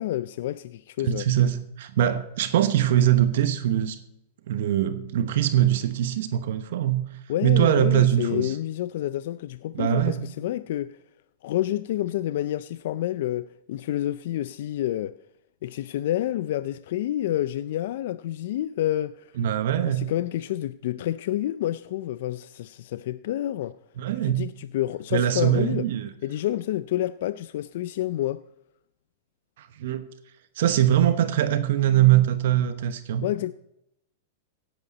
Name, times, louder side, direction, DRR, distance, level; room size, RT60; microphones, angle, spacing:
voice 1, 0.0-1.2 7.3-11.0 11.4-15.1 15.6-19.4 19.9-23.8 24.2-25.9 26.2-28.4 33.2-33.5, left 13 dB, 65° left, 0.4 m, -28 dB
voice 2, 1.0-4.0 4.5-7.0 7.4-8.5 9.7-10.2 19.4-20.1 24.0-24.5 25.1-26.1 29.6-30.0 30.6-33.3, right 11 dB, 70° right, 1.0 m, -22 dB
17.5 x 8.1 x 4.2 m
hypercardioid pair, 130°, 0 cm